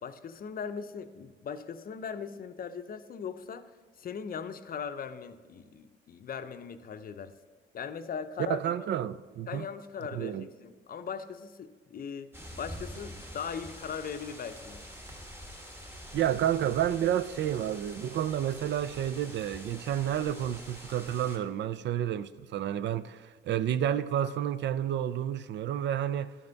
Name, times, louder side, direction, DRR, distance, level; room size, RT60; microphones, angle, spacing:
voice 1, 0.0-3.7 4.0-7.3 7.7-8.6 9.5-12.3 12.6-14.8, left 6 dB, 50° left, 0.6 m, -39 dB
voice 2, 8.5-9.6 10.1-10.5 16.1-26.4, right 10 dB, 65° right, 0.4 m, -30 dB
sound 1, 12.3-21.4, equal, 10° right, 1.4 m, -46 dB
12.5 x 5.5 x 4.0 m
cardioid pair, 90°, 20 cm